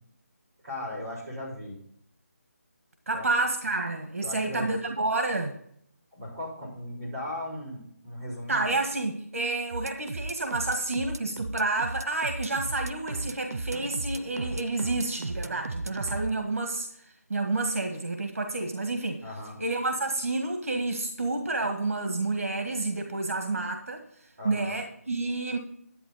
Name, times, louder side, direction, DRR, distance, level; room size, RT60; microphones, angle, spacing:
voice 1, 0.6-1.8 3.1-3.2 4.2-4.7 6.1-8.7 19.2-19.6 24.4-24.8, left 1 dB, 15° right, -10 dB, 4.7 m, -37 dB
voice 2, 3.1-5.6 8.5-19.2 19.6-24.0 24.4-25.6, right 2 dB, 60° right, 5 dB, 1.6 m, -29 dB
sound 1, 9.7-16.3, right 2 dB, 75° right, 0.7 m, -35 dB
11.0 x 8.7 x 4.1 m, 0.70 s
figure-of-eight pair, 180°, 8 cm